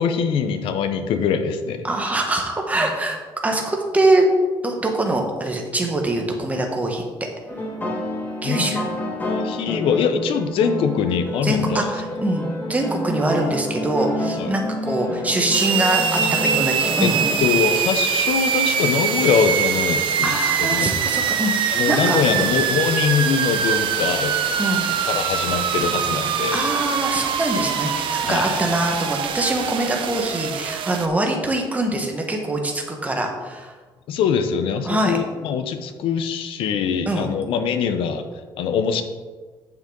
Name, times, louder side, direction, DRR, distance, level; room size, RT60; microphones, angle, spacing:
voice 1, 0.0-1.8 8.4-8.8 9.2-11.9 14.4-14.5 16.2-16.4 17.0-17.1 17.4-20.9 21.7-24.4 25.1-26.6 28.3-28.6 34.1-38.2 38.6-39.0, left 6 dB, 85° left, 8 dB, 0.8 m, -23 dB
voice 2, 1.8-3.2 3.4-4.3 4.6-7.3 8.4-8.8 11.4-12.4 12.7-17.3 20.2-22.5 24.6-24.9 26.5-33.7 34.8-35.2 37.1-37.3, right 1 dB, 15° right, 2 dB, 1.5 m, -23 dB
sound 1, 7.5-17.4, left 1 dB, 20° left, 1.8 m, -29 dB
sound 2, 15.5-31.1, right 8 dB, 70° right, 0.8 m, -23 dB
8.8 x 6.8 x 3.9 m, 1.4 s
cardioid pair, 125°, 9 cm